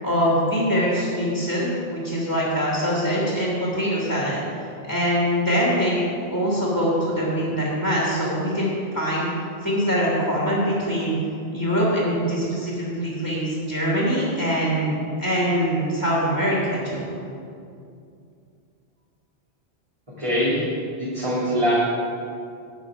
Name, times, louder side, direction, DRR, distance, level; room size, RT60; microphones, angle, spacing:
voice 1, 0.0-4.4 4.9-6.0 6.3-9.3 9.6-11.1 11.5-17.0, equal, 15° left, -6 dB, 2.7 m, -23 dB
voice 2, 20.2-20.7 21.0-21.7, equal, 30° right, -10 dB, 2.7 m, -23 dB
12.5 x 9.4 x 5.0 m, 2.5 s
omnidirectional pair, 1.1 m